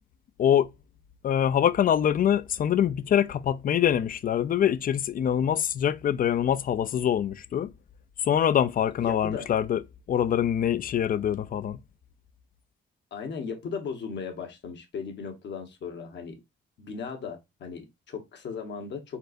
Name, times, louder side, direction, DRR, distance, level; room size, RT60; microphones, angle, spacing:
voice 1, 0.4-0.7 1.2-7.7 8.2-9.8 10.1-11.8, left 9 dB, 45° left, 0.4 m, -24 dB
voice 2, 9.0-9.5 13.1-16.4 16.8-19.2, left 5 dB, 65° left, 1.3 m, -37 dB
4.4 x 3.9 x 2.5 m
cardioid pair, 90°, 20 cm